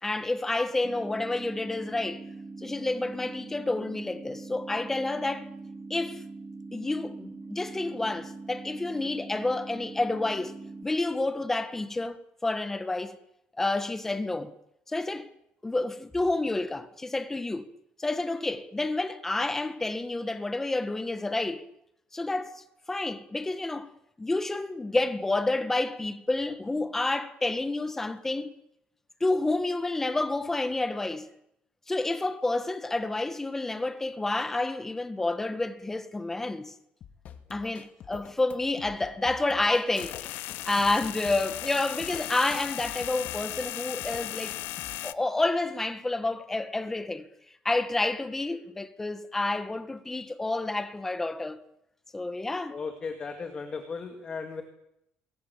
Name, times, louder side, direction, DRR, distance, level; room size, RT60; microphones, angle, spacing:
voice 1, 0.0-2.2 2.6-5.5 5.9-6.2 6.7-10.5 10.8-13.2 13.6-14.5 14.9-15.3 15.6-17.7 18.0-21.6 22.1-23.9 24.2-28.5 29.2-31.3 31.9-36.7 37.5-40.4 40.6-44.6 45.0-47.3 47.6-51.6 52.1-52.8, left 2 dB, 10° left, 1.6 m, -29 dB
sound 1, 0.8-10.8, right 3 dB, 15° right, 1.6 m, -42 dB
sound 2, 37.0-45.0, left 8 dB, 45° left, 2.3 m, -47 dB
sound 3, 39.9-45.1, left 17 dB, 80° left, 1.1 m, -37 dB
voice 2, 52.7-54.6, left 4 dB, 25° left, 2.5 m, -36 dB
27.0 x 22.0 x 8.6 m
cardioid pair, 160°, 3 cm